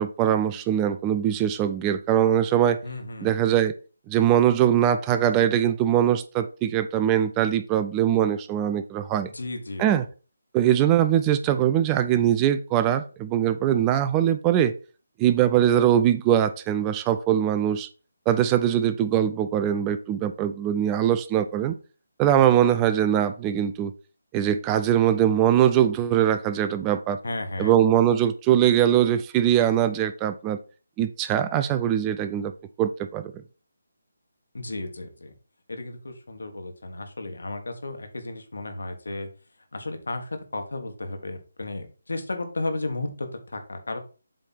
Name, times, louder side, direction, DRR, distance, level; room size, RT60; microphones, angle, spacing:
voice 1, 0.0-2.8 3.2-3.7 4.1-9.3 9.8-10.0 10.5-14.7 15.2-17.9 18.3-21.7 22.2-23.9 24.3-27.2 27.6-30.6 31.0-32.5 32.8-33.3, right 10 dB, 15° right, 0.4 m, -22 dB
voice 2, 2.8-3.3 9.3-9.9 27.2-27.7 34.5-35.3 35.7-39.3 39.7-44.0, left 2 dB, 75° left, 1.5 m, -33 dB
7.7 x 3.5 x 4.4 m
figure-of-eight pair, 155°, 0 cm